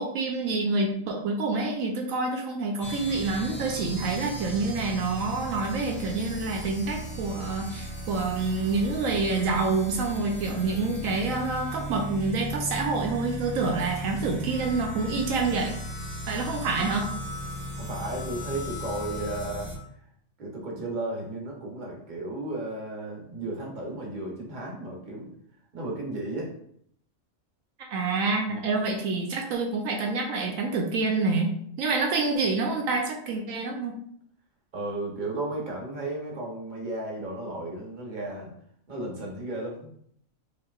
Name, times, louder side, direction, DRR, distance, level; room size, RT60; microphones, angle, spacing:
voice 1, 0.0-15.8 16.3-17.1 27.9-34.0, right 3 dB, 80° right, 1 dB, 1.0 m, -27 dB
sound 1, 2.8-19.8, right 1 dB, 10° left, 1.0 m, -36 dB
voice 2, 17.8-19.7 20.4-25.3 25.7-26.5 28.5-28.6 34.7-38.5 38.9-39.9, right 2 dB, 40° right, -2 dB, 1.1 m, -34 dB
5.2 x 2.9 x 2.4 m, 0.67 s
omnidirectional pair, 1.4 m